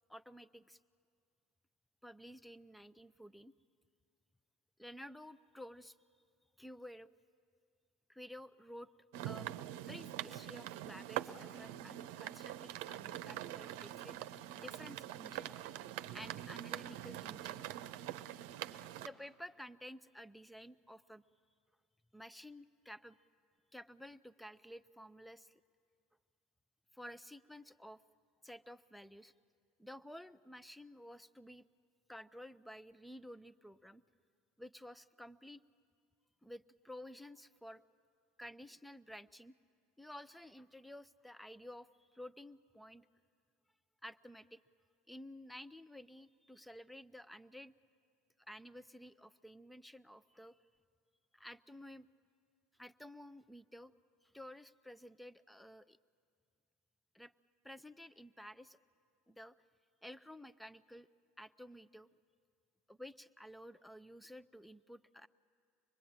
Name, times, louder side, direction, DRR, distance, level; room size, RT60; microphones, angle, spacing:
voice 1, 0.1-0.8 2.0-3.5 4.8-6.0 6.6-7.1 8.1-8.9 9.2-9.6 9.9-14.2 14.5-15.7 16.1-17.6 19.0-21.2 22.1-23.2 23.7-25.6 26.9-28.0 28.4-29.3 29.8-31.7 32.1-34.0 34.6-35.6 36.4-37.8 38.4-39.5 40.0-43.1 44.0-44.6 45.1-47.7 48.5-50.6 51.3-52.1 52.7-53.9 54.2-56.0 57.1-57.3 57.6-58.8 59.3-59.5 60.0-61.1 61.4-62.1 62.9-65.3, equal, 5° left, 16 dB, 0.6 m, -52 dB
sound 1, 9.1-19.1, right 13 dB, 70° right, 0.8 m, -44 dB
24.5 x 20.5 x 8.8 m, 2.3 s
hypercardioid pair, 85°, 0 cm